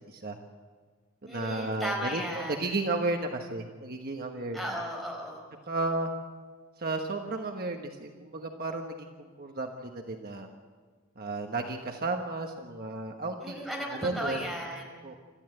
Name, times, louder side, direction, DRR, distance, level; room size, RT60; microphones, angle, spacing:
voice 1, 0.1-0.4 1.2-4.8 5.7-6.1 6.8-10.5 11.2-14.4 15.0-15.1, right 2 dB, 45° right, 3 dB, 1.3 m, -33 dB
voice 2, 1.3-2.6 4.5-5.4 13.4-14.8, equal, ahead, -1 dB, 4.7 m, -35 dB
27.0 x 13.5 x 7.8 m, 1.5 s
head